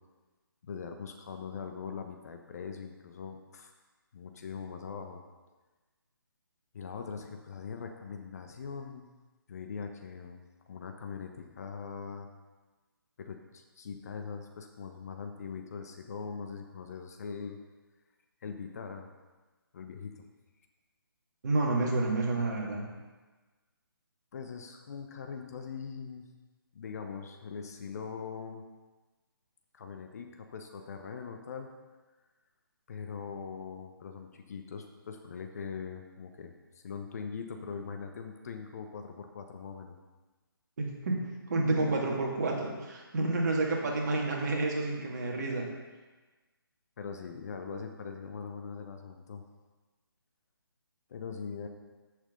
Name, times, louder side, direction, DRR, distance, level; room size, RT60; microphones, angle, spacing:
voice 1, 0.6-3.7 4.1-5.2 6.7-9.1 9.5-10.4 10.7-12.3 13.2-17.6 18.4-19.1 19.7-20.1 24.3-26.3 26.7-28.6 29.7-31.7 32.9-39.9 47.0-49.4 51.1-51.7, left 5 dB, 40° left, 5 dB, 1.0 m, -41 dB
voice 2, 21.4-22.9 40.8-41.2 41.5-45.7, right 2 dB, 45° right, -1 dB, 2.2 m, -29 dB
14.5 x 6.5 x 3.8 m, 1.3 s
figure-of-eight pair, 145°, 13 cm